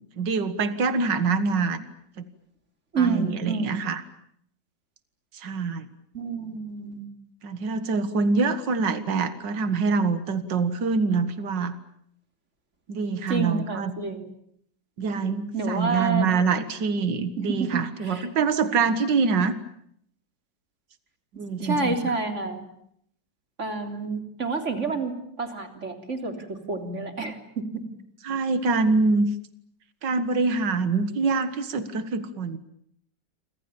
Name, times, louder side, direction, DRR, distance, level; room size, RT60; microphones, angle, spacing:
voice 1, 0.2-1.8 2.2-2.3 3.0-4.0 5.3-5.9 7.4-11.7 12.9-13.9 15.0-19.6 21.3-22.0 28.2-29.3 30.0-32.6, right 4 dB, 75° right, 11 dB, 2.3 m, -25 dB
voice 2, 2.9-3.9 6.1-7.1 13.3-14.3 15.0-16.3 17.4-18.3 21.6-22.7 23.6-27.8, right 4 dB, 40° right, 6 dB, 3.8 m, -29 dB
29.0 x 25.5 x 7.2 m, 0.70 s
omnidirectional pair, 1.9 m